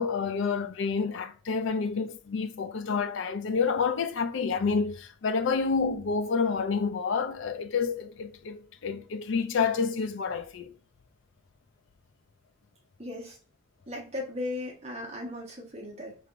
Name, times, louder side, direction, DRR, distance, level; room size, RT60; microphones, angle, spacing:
voice 1, 0.0-10.7, left 5 dB, 65° left, 0.4 m, -29 dB
voice 2, 13.0-13.3 13.9-16.1, left 2 dB, 30° right, 1.2 m, -37 dB
4.4 x 3.3 x 2.5 m
head